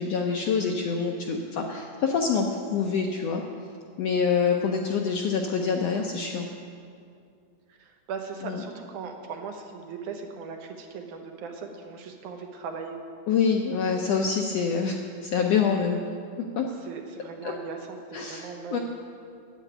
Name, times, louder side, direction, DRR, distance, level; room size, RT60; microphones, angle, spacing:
voice 1, 0.0-3.4 4.0-6.5 8.4-8.6 13.3-16.0 16.5-16.7 17.4-17.5 18.1-18.8, left 6 dB, 75° left, 1 dB, 1.5 m, -26 dB
voice 2, 7.7-13.0 16.8-18.8, right 5 dB, 75° right, 3 dB, 2.4 m, -38 dB
9.4 x 8.1 x 9.1 m, 2.4 s
omnidirectional pair, 3.6 m